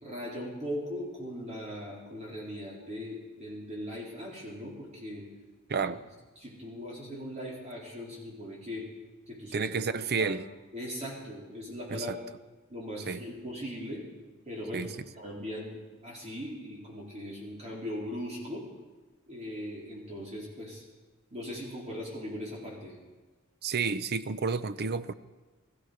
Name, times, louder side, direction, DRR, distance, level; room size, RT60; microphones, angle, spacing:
voice 1, 0.0-5.3 6.4-8.9 9.3-10.4 10.7-12.1 12.7-14.0 14.4-14.9 15.1-18.7 19.3-20.8 21.3-23.0, equal, 30° right, 3.9 m, -39 dB
voice 2, 5.7-6.0 9.5-10.4 11.9-12.2 13.1-13.2 14.7-14.9 23.6-25.1, right 5 dB, 50° right, 0.6 m, -30 dB
18.0 x 14.5 x 5.0 m
head